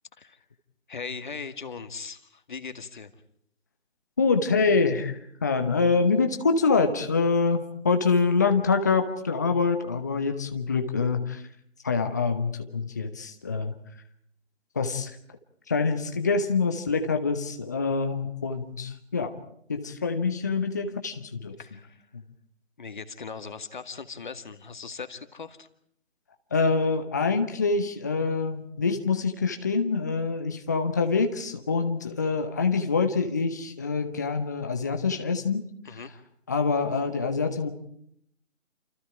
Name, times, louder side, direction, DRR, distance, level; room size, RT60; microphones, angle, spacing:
voice 1, 0.9-3.1 21.6-22.0 22.8-25.7 35.9-36.1, left 5 dB, 35° left, 9 dB, 2.0 m, -39 dB
voice 2, 4.2-11.4 11.8-13.7 14.7-15.2 15.7-19.4 19.7-21.6 22.1-22.2 26.5-35.6 36.5-37.7, left 4 dB, 15° left, 6 dB, 1.0 m, -25 dB
29.0 x 28.5 x 4.9 m, 0.68 s
figure-of-eight pair, 155°, 39 cm